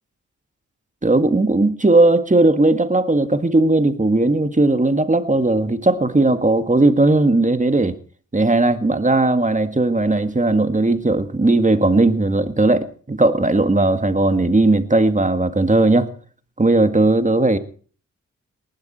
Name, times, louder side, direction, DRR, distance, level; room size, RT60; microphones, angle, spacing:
voice 1, 1.0-8.0 8.3-16.1 16.6-17.6, right 2 dB, 25° right, 1.9 m, -17 dB
19.0 x 12.5 x 4.3 m
cardioid pair, 50°, 32 cm